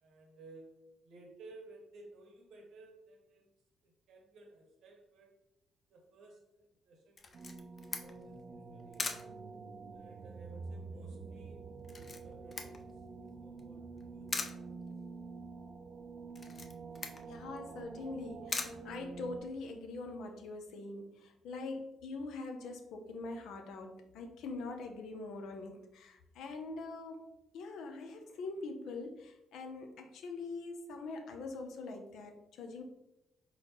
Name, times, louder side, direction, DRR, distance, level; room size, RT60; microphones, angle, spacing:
voice 1, 0.0-3.5 3.8-5.3 5.9-7.3 7.8-9.0 9.9-11.6 11.9-12.8 13.4-14.8, right 2 dB, 80° right, 2 dB, 1.1 m, -57 dB
Camera, 7.2-19.7, left 4 dB, 40° left, 0.6 m, -44 dB
sound 1, 7.3-19.4, right 4 dB, 60° right, 0.5 m, -47 dB
voice 2, 17.2-32.8, left 3 dB, 80° left, 5 dB, 0.7 m, -43 dB
4.2 x 3.9 x 3.0 m, 0.88 s
cardioid pair, 90°, 0 cm